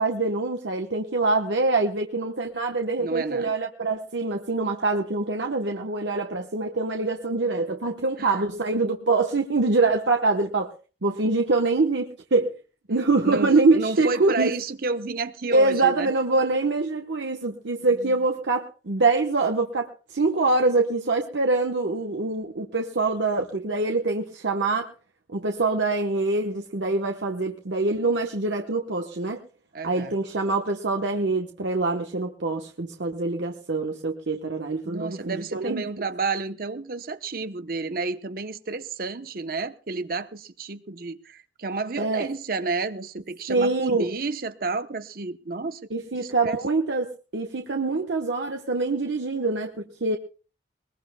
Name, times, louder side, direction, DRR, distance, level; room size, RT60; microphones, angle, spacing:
voice 1, 0.0-10.7 11.0-12.5 12.9-14.5 15.5-24.9 25.3-29.4 29.8-36.0 42.0-42.3 43.5-44.1 45.9-50.2, right 3 dB, 85° right, 1.1 m, -24 dB
voice 2, 3.0-3.5 8.2-8.4 13.2-16.1 17.9-18.1 29.7-30.2 34.8-45.8 46.2-46.6, right 3 dB, 55° right, 0.9 m, -31 dB
21.0 x 21.0 x 2.2 m
head